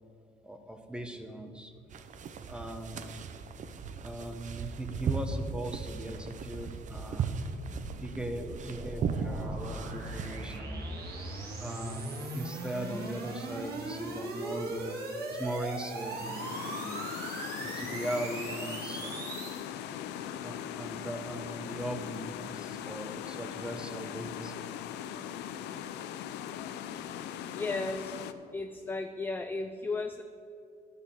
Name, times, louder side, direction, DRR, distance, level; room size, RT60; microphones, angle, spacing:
voice 1, 0.4-1.7 2.5-3.1 4.0-7.4 8.0-10.8 11.6-15.0 15.3-17.1 17.6-19.3 20.4-24.6, right 1 dB, 5° right, 6 dB, 1.0 m, -39 dB
sound 1, 1.9-10.6, right 5 dB, 45° right, 0.7 m, -37 dB
sound 2, 6.8-19.6, right 2 dB, 65° right, 2.3 m, -40 dB
sound 3, 15.9-28.3, left 10 dB, 85° left, 0.6 m, -40 dB
voice 2, 27.5-28.2 28.5-30.2, left 3 dB, 10° left, 7 dB, 0.4 m, -34 dB
10.5 x 6.8 x 7.4 m, 2.6 s
cardioid pair, 110°, 17 cm